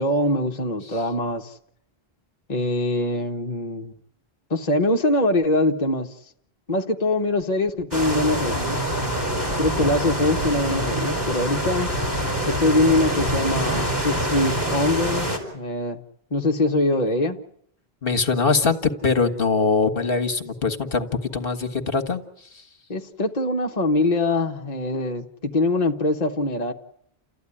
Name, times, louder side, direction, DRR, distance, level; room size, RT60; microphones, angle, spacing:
voice 1, 0.0-1.6 2.5-3.9 4.5-6.3 6.7-9.0 9.6-11.9 12.5-16.0 16.3-17.4 22.9-26.7, left 2 dB, 40° left, 2 dB, 1.3 m, -23 dB
sound 1, 7.9-15.4, right 1 dB, 20° right, 4.9 m, -25 dB
voice 2, 18.0-18.8 19.0-22.2 22.5-22.6, left 4 dB, 60° left, 8 dB, 1.8 m, -22 dB
29.5 x 14.0 x 9.9 m, 0.72 s
omnidirectional pair, 1.1 m